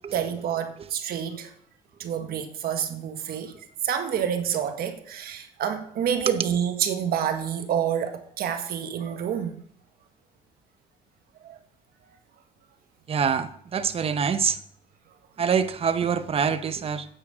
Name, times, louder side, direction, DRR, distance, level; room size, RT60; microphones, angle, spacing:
voice 1, 0.1-1.5 2.0-3.6 3.8-9.6 11.4-11.6, right 8 dB, 65° right, 1.4 m, -28 dB
voice 2, 13.1-14.6 15.4-17.1, right 6 dB, 35° right, 0.8 m, -25 dB
9.1 x 8.3 x 5.0 m
cardioid pair, 110°, 17 cm